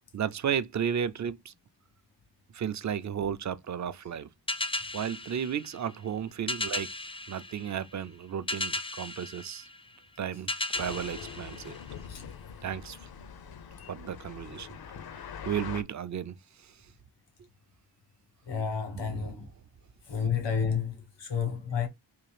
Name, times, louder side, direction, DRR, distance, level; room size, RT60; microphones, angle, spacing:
voice 1, 0.1-1.5 2.5-4.3 4.9-6.9 7.3-9.7 10.2-11.8 12.6-13.1 13.9-14.7 15.4-16.8 19.0-19.3, right 8 dB, 45° right, 0.5 m, -34 dB
sound 1, 4.5-12.3, left 2 dB, 15° left, 0.4 m, -37 dB
sound 2, 10.7-15.8, left 7 dB, 60° left, 0.6 m, -43 dB
voice 2, 18.5-19.5 20.1-21.9, left 7 dB, 80° left, 1.2 m, -31 dB
3.6 x 2.5 x 3.3 m
cardioid pair, 60°, 42 cm